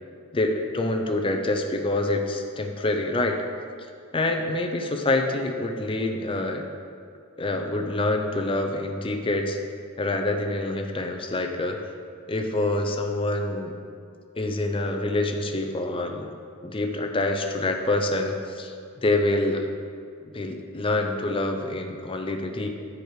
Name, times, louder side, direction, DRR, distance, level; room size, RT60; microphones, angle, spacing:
voice 1, 0.3-3.4 4.1-6.6 7.4-9.6 10.0-11.8 12.3-13.8 14.4-16.4 16.6-18.7 19.0-19.6 20.3-22.7, left 2 dB, 25° left, 4 dB, 0.6 m, -26 dB
7.5 x 4.7 x 6.5 m, 2.3 s
head